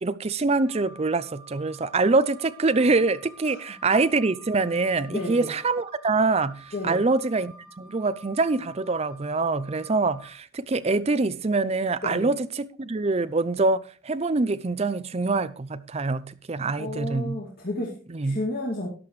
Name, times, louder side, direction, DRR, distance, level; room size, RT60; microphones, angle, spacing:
voice 1, 0.0-6.6 6.8-17.4 18.1-18.4, right 3 dB, 30° right, 0.5 m, -25 dB
Wind instrument woodwind instrument, 0.7-10.3, right 2 dB, 5° right, 1.6 m, -50 dB
voice 2, 5.1-5.5 6.7-7.0 12.0-12.3 16.8-18.0 18.2-18.9, left 1 dB, 50° left, 2.3 m, -31 dB
13.5 x 10.5 x 3.2 m
head